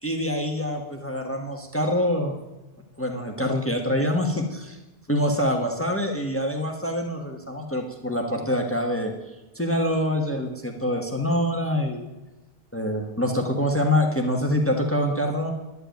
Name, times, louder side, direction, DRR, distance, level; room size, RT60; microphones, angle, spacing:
voice 1, 0.0-2.3 3.0-4.8 5.1-9.1 9.5-12.1 12.7-15.5, left 1 dB, 10° left, 3 dB, 1.4 m, -25 dB
11.0 x 7.9 x 9.2 m, 1.1 s
omnidirectional pair, 1.1 m